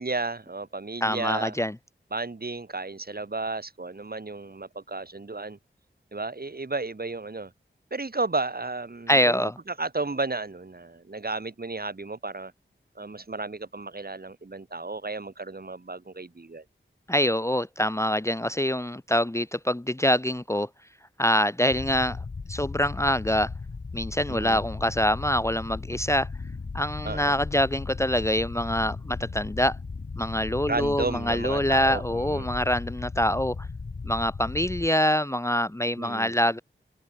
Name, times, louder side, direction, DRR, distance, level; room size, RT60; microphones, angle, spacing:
voice 1, 0.0-1.6 2.1-5.6 6.1-7.5 7.9-12.5 13.0-16.6 24.3-24.6 27.0-27.3 30.7-32.5 36.0-36.3, right 3 dB, 50° right, 2.3 m, -33 dB
voice 2, 1.0-1.8 9.1-9.5 17.1-20.7 21.2-22.2 22.5-23.5 23.9-26.3 26.7-29.8 30.2-33.6 34.0-36.6, equal, 15° left, 0.9 m, -25 dB
sound 1, 21.7-34.9, left 4 dB, 60° left, 1.6 m, -37 dB
wide cardioid pair, 50°, 20 cm